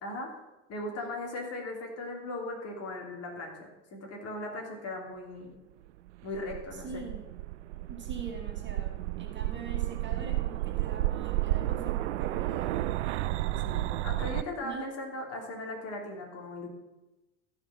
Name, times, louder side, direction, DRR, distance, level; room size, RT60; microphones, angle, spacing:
voice 1, 0.7-5.6 6.2-7.0 13.6-16.7, left 2 dB, 40° left, 1 dB, 3.1 m, -38 dB
sound 1, 6.1-14.4, right 15 dB, 70° right, 0.5 m, -32 dB
voice 2, 6.7-7.3 7.9-13.2 14.6-15.0, right 5 dB, 30° right, 2 dB, 2.1 m, -43 dB
15.0 x 5.2 x 6.2 m, 1.1 s
figure-of-eight pair, 65°, 37 cm